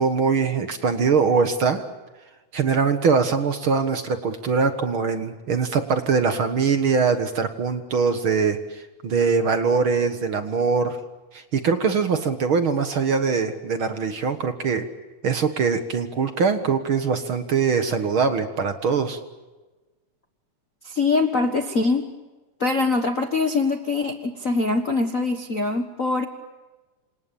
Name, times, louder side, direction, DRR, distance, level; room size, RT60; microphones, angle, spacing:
voice 1, 0.0-1.9 2.5-11.0 11.3-14.9 15.2-19.2, right 5 dB, 50° right, 9 dB, 2.0 m, -22 dB
voice 2, 20.8-22.1 22.6-26.3, left 3 dB, 40° left, 5 dB, 1.2 m, -23 dB
29.0 x 26.5 x 7.1 m, 1.2 s
omnidirectional pair, 3.5 m